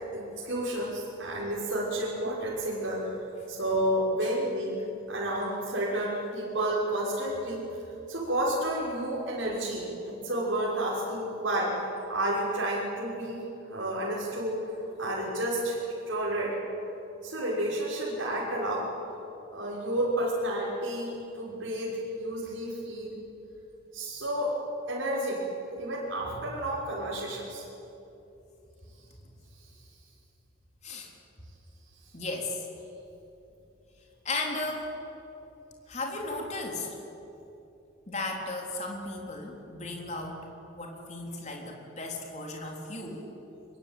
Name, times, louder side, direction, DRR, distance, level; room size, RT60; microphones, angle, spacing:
voice 1, 0.1-3.2 3.5-7.6 8.1-13.4 13.7-14.6 15.0-15.8 16.1-16.6 17.2-18.9 19.5-23.2 23.9-24.5 24.9-25.4 25.8-27.6, right 1 dB, 70° right, -7 dB, 6.0 m, -31 dB
voice 2, 32.1-32.6 34.2-34.9 35.9-36.9 38.1-40.4 40.7-43.3, left 2 dB, 35° left, 0 dB, 3.9 m, -35 dB
24.0 x 22.5 x 9.3 m, 3.0 s
head